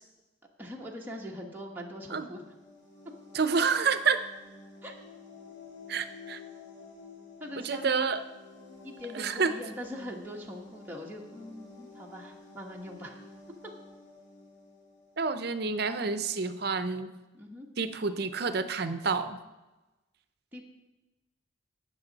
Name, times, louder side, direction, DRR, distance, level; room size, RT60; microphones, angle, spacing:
voice 1, 0.6-2.5 4.8-4.9 7.4-7.9 8.8-13.2 17.3-17.7 20.5-20.6, left 1 dB, 10° right, -2 dB, 1.2 m, -42 dB
sound 1, 2.1-15.6, left 3 dB, 75° left, 2.4 m, -51 dB
voice 2, 3.3-4.2 5.9-6.4 7.6-8.2 9.1-9.5 15.2-17.1 17.8-19.4, right 5 dB, 55° right, 11 dB, 0.6 m, -28 dB
18.0 x 6.2 x 4.0 m, 1.1 s
head